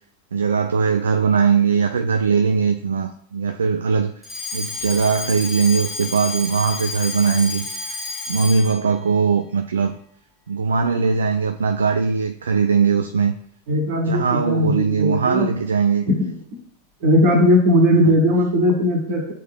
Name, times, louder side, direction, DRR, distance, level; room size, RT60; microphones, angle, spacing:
voice 1, 0.3-4.1 4.5-7.9 8.3-9.9 10.5-13.3 14.1-16.0 17.9-18.1, right 5 dB, 70° right, 6 dB, 0.4 m, -20 dB
Alarm, 4.2-8.9, left 3 dB, 5° left, 1.9 m, -30 dB
voice 2, 13.7-15.5 16.1-16.6 17.0-19.3, left 1 dB, 50° right, 4 dB, 1.9 m, -18 dB
9.8 x 4.4 x 2.2 m, 0.65 s
figure-of-eight pair, 90°, 0 cm